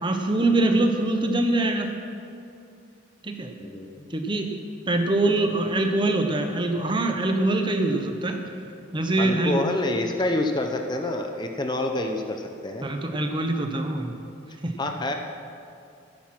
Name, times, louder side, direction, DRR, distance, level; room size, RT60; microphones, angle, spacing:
voice 1, 0.0-1.9 3.2-3.5 4.1-4.5 4.9-8.4 8.9-9.7 12.8-14.1 14.6-14.7, right 2 dB, 25° right, 4 dB, 0.9 m, -24 dB
voice 2, 3.6-4.1 9.2-12.9 14.8-15.1, left 1 dB, 20° left, 4 dB, 0.7 m, -27 dB
13.0 x 10.5 x 6.1 m, 2.6 s
head